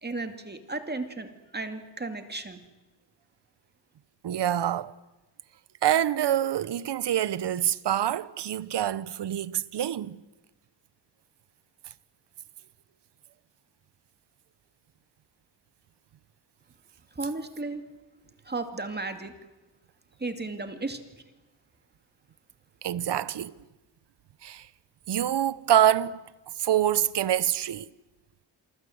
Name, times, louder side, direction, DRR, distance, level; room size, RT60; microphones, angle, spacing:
voice 1, 0.0-2.6 17.1-17.8 18.4-19.3 20.2-21.0, right 3 dB, 25° right, 2.4 m, -34 dB
voice 2, 4.2-4.9 5.8-10.2 22.8-23.5 24.4-24.7 25.1-26.2 26.6-27.9, right 11 dB, 75° right, 0.9 m, -26 dB
28.0 x 23.0 x 7.9 m
wide cardioid pair, 105°, 41 cm